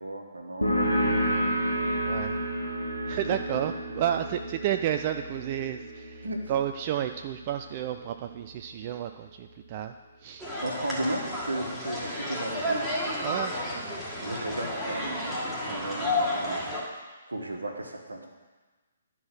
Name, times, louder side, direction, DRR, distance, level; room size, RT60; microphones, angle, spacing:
voice 1, 0.0-1.6 3.3-3.6 6.2-6.5 10.6-13.2 14.2-15.4 15.6-17.0 17.3-18.3, right 1 dB, 75° right, 3 dB, 1.4 m, -35 dB
sound 1, 0.6-7.9, equal, 90° left, 1.3 m, -30 dB
voice 2, 2.0-2.4 3.1-9.9 10.2-10.4 13.2-14.0, right 10 dB, 35° right, 7 dB, 0.3 m, -31 dB
sound 2, 10.4-16.8, left 1 dB, ahead, 1.7 m, -31 dB
11.0 x 4.5 x 6.1 m, 1.3 s
figure-of-eight pair, 130°, 0 cm